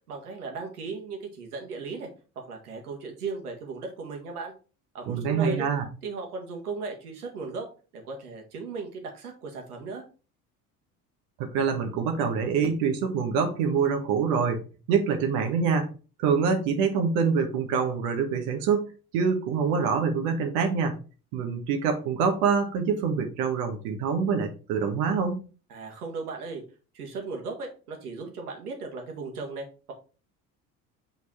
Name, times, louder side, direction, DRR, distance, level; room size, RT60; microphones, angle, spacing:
voice 1, 0.1-2.1 2.4-4.5 4.9-5.7 6.0-7.7 7.9-10.0 25.7-26.6 26.9-29.9, right 4 dB, 90° right, 2 dB, 1.7 m, -36 dB
voice 2, 5.1-5.8 11.4-15.9 16.2-21.0 21.3-25.4, right 6 dB, 70° right, 4 dB, 1.4 m, -25 dB
6.3 x 4.0 x 4.2 m, 0.35 s
hypercardioid pair, 65°, 44 cm